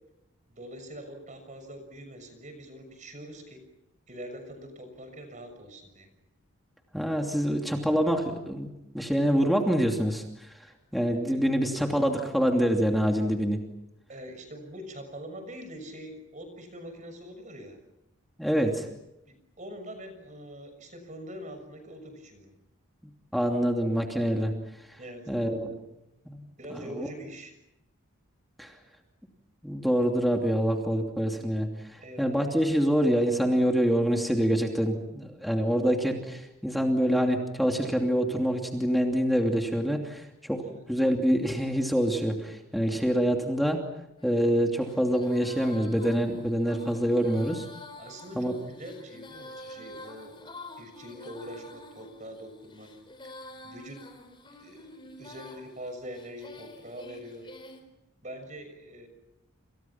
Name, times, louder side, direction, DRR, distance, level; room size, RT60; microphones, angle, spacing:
voice 1, 0.5-3.6 4.1-6.1 11.1-11.6 14.1-17.8 19.3-22.5 25.0-25.5 26.6-27.5 32.0-32.5 40.6-40.8 48.0-50.4 50.8-52.9 53.6-54.0 54.6-57.5 58.2-59.1, equal, 35° right, 7 dB, 6.5 m, -43 dB
voice 2, 6.9-10.5 10.9-13.6 18.4-18.8 23.3-24.5 25.3-25.7 26.3-26.5 26.9-27.1 28.6-28.7 29.6-40.6 40.9-43.8 44.2-47.6 48.3-48.5, equal, ahead, 2 dB, 2.8 m, -26 dB
Female singing, 44.2-57.8, left 1 dB, 25° left, 4.1 m, -48 dB
28.5 x 28.5 x 6.0 m, 0.87 s
head